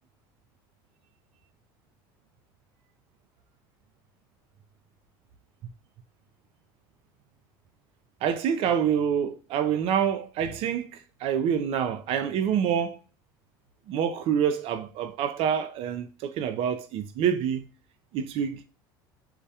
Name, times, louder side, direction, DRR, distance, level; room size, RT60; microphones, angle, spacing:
voice 1, 8.2-13.0 13.9-17.7 18.1-18.6, right 8 dB, 50° right, 0.4 m, -27 dB
2.2 x 2.1 x 2.7 m
hypercardioid pair, 80°, 12 cm